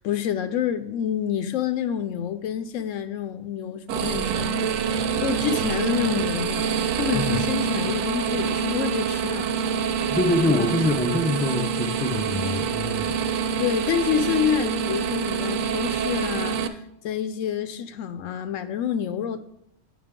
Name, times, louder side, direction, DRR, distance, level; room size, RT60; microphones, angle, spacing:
voice 1, 0.0-9.5 10.4-10.7 13.6-16.8 17.0-19.4, left 8 dB, 75° left, 1.0 m, -28 dB
sound 1, 3.9-16.7, right 7 dB, 80° right, 0.9 m, -26 dB
voice 2, 7.1-7.4 10.1-13.1, left 2 dB, 15° left, 0.3 m, -25 dB
9.5 x 5.6 x 3.6 m
omnidirectional pair, 1.3 m